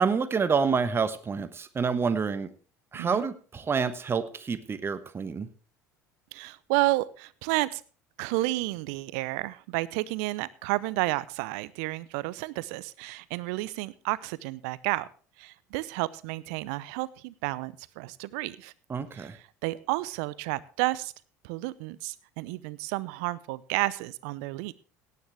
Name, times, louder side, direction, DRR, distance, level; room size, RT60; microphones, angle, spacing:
voice 1, 0.0-2.5 2.9-5.5 18.9-19.4, right 5 dB, 25° right, 12 dB, 1.1 m, -28 dB
voice 2, 6.3-7.8 8.2-15.1 15.4-18.7 19.1-21.1 21.4-24.7, right 20 dB, 65° right, 20 dB, 0.6 m, -31 dB
17.5 x 9.4 x 3.4 m, 0.39 s
figure-of-eight pair, 65°, 9 cm